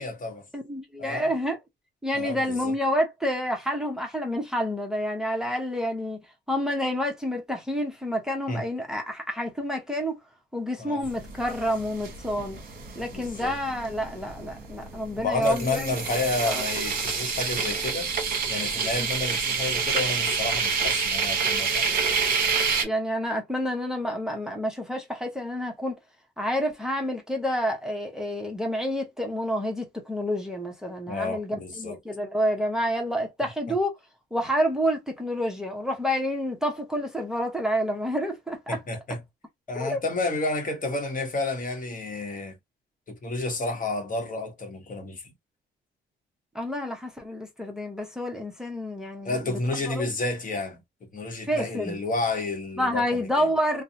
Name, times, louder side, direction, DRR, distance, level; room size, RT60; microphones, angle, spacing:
voice 1, 0.0-0.4 1.0-1.3 2.1-2.7 8.5-8.6 10.8-11.0 13.1-13.5 15.2-18.1 18.5-22.3 31.1-32.0 38.7-39.2 39.7-42.6 43.1-45.2 49.2-53.5, left 2 dB, 45° left, 1.0 m, -31 dB
voice 2, 0.5-1.6 2.0-10.2 10.5-12.6 12.9-16.0 16.5-16.6 19.0-19.1 22.8-26.0 26.4-33.9 34.3-38.8 39.8-40.0 46.5-49.6 49.8-50.1 51.4-52.0 52.8-53.8, equal, 5° right, 0.7 m, -28 dB
sound 1, 11.0-22.8, right 5 dB, 45° right, 1.1 m, -28 dB
2.6 x 2.1 x 2.5 m
cardioid pair, 90°, 20 cm